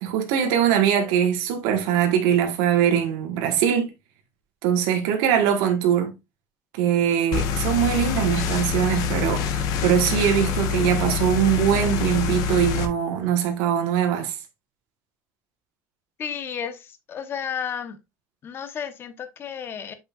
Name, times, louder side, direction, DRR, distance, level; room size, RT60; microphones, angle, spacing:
voice 1, 0.0-3.9 4.6-6.1 6.7-14.3, right 9 dB, 85° right, 1.5 m, -22 dB
sound 1, 7.3-12.9, left 7 dB, 60° left, 1.2 m, -25 dB
voice 2, 16.2-18.0 18.4-19.9, left 7 dB, 30° left, 1.0 m, -32 dB
8.0 x 5.4 x 2.4 m
cardioid pair, 150°, 7 cm